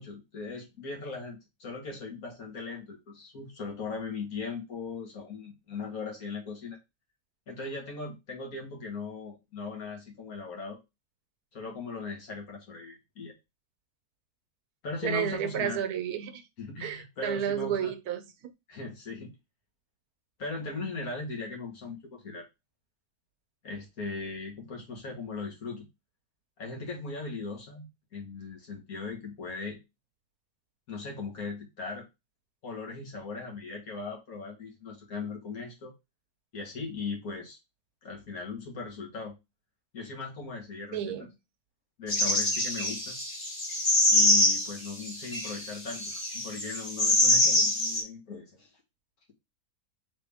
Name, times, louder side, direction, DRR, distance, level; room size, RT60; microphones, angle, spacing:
voice 1, 0.0-6.8 7.5-10.8 11.5-13.3 14.8-15.8 16.6-17.9 18.7-19.3 20.4-22.5 23.6-25.9 26.6-29.8 30.9-32.1 32.6-35.9 36.5-37.6 38.0-39.4 39.9-41.3 42.0-43.2 44.1-48.7, left 4 dB, 70° left, 1.9 m, -38 dB
voice 2, 15.0-16.4 16.8-18.5 40.9-41.3, right 9 dB, 80° right, 1.2 m, -31 dB
sound 1, 42.1-48.0, left 1 dB, 40° left, 1.5 m, -25 dB
3.7 x 3.4 x 3.4 m
omnidirectional pair, 1.6 m